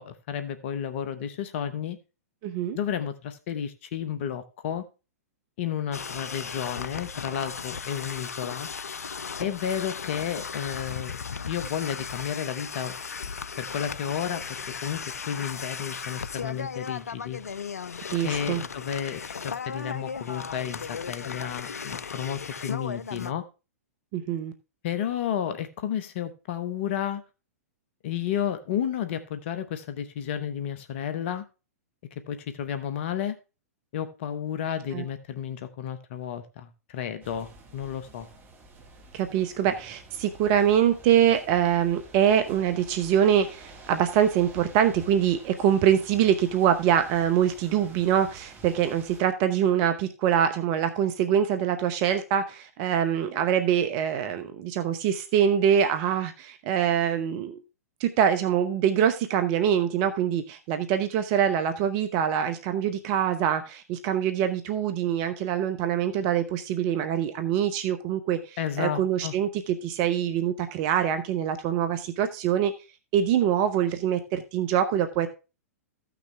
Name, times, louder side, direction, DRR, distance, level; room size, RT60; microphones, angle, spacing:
voice 1, 0.0-2.0 2.7-4.8 5.6-8.7 9.4-13.0 13.6-14.4 14.8-17.4 18.2-23.5 24.8-27.2 28.0-31.4 32.3-33.4 33.9-38.3 68.6-69.3, left 9 dB, 50° left, 10 dB, 1.1 m, -32 dB
voice 2, 2.4-2.8 18.1-18.6 24.1-24.5 34.9-35.0 39.1-57.6 58.0-72.7 73.1-75.3, right 9 dB, 40° right, 9 dB, 1.0 m, -24 dB
sound 1, 5.9-23.3, left 6 dB, 80° left, 0.4 m, -36 dB
sound 2, 37.2-49.2, right 3 dB, 25° right, 1.8 m, -49 dB
14.5 x 6.0 x 3.4 m, 0.30 s
figure-of-eight pair, 110°, 8 cm